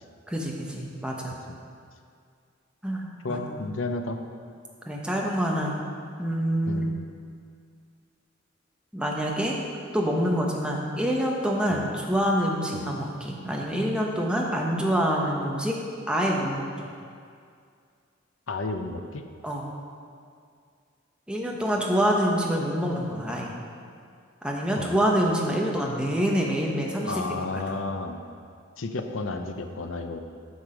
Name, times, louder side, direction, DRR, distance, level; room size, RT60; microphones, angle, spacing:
voice 1, 0.3-1.4 2.8-3.7 4.9-5.7 6.2-6.9 8.9-9.6 9.9-15.8 16.1-16.6 19.4-19.7 21.3-23.5 24.4-27.6, equal, 5° right, -2 dB, 1.0 m, -26 dB
voice 2, 3.2-4.2 6.7-6.9 11.7-11.8 12.7-12.8 18.5-19.2 24.8-25.0 27.0-28.2 28.8-30.2, left 3 dB, 80° left, 6 dB, 0.7 m, -32 dB
9.5 x 6.3 x 5.0 m, 2.3 s
head